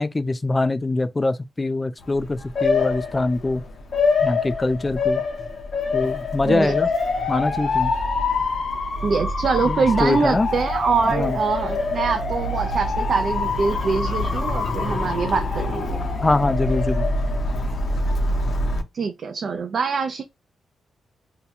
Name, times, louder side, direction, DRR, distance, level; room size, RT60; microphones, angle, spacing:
voice 1, 0.0-3.6 4.2-5.2 5.9-6.9 7.3-7.9 9.6-10.5 11.1-11.4 16.2-17.1, left 2 dB, 20° left, 0.3 m, -23 dB
Motor vehicle (road) / Siren, 2.0-18.8, left 3 dB, 45° left, 0.7 m, -25 dB
voice 2, 6.5-6.8 9.0-16.0 18.9-20.2, right 5 dB, 50° right, 0.4 m, -24 dB
2.8 x 2.2 x 4.0 m
wide cardioid pair, 145°, 0 cm